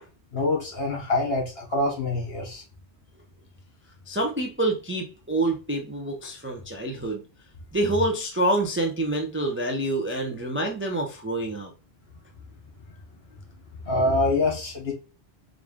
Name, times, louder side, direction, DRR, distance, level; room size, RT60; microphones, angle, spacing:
voice 1, 0.3-2.6 13.9-14.9, left 2 dB, 65° left, 0 dB, 1.9 m, -25 dB
voice 2, 4.1-7.2 7.7-11.7, right 1 dB, 15° right, 2 dB, 0.4 m, -27 dB
4.7 x 2.5 x 3.5 m, 0.32 s
omnidirectional pair, 1.1 m